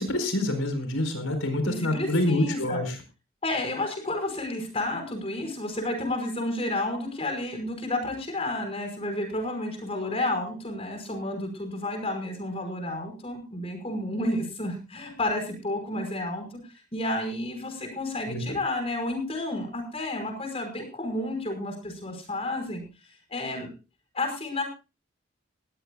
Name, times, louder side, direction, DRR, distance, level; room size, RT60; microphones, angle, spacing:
voice 1, 0.0-3.0 18.3-18.6, left 1 dB, 85° left, 8 dB, 4.6 m, -27 dB
voice 2, 1.6-2.8 3.4-16.4 16.9-22.8 23.3-23.7 24.1-24.6, left 1 dB, 30° left, 5 dB, 5.4 m, -31 dB
20.0 x 16.5 x 2.4 m, 0.30 s
head